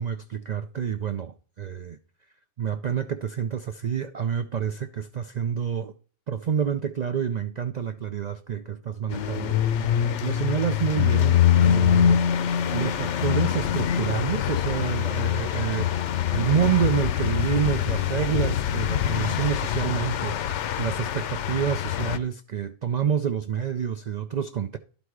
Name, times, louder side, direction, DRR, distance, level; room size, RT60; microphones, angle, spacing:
voice 1, 0.0-2.0 2.6-5.9 6.3-9.6 10.2-12.2 12.7-24.8, right 8 dB, 70° right, 0.4 m, -28 dB
sound 1, 9.1-22.2, left 9 dB, 65° left, 0.9 m, -24 dB
11.5 x 4.1 x 4.7 m
omnidirectional pair, 1.4 m